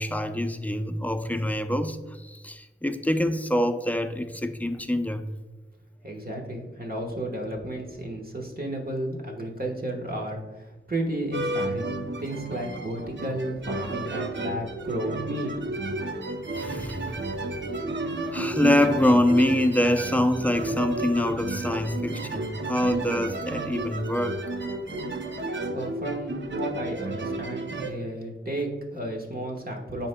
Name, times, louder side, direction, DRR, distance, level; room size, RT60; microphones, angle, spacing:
voice 1, 0.0-5.3 16.5-17.4 18.3-24.4, left 1 dB, 5° left, 8 dB, 0.5 m, -25 dB
voice 2, 6.0-15.5 25.4-30.1, right 1 dB, 45° right, 0 dB, 1.2 m, -33 dB
sound 1, 11.3-27.9, right 2 dB, 60° right, 0.6 m, -32 dB
10.0 x 4.3 x 2.2 m, 1.1 s
wide cardioid pair, 45°, 21 cm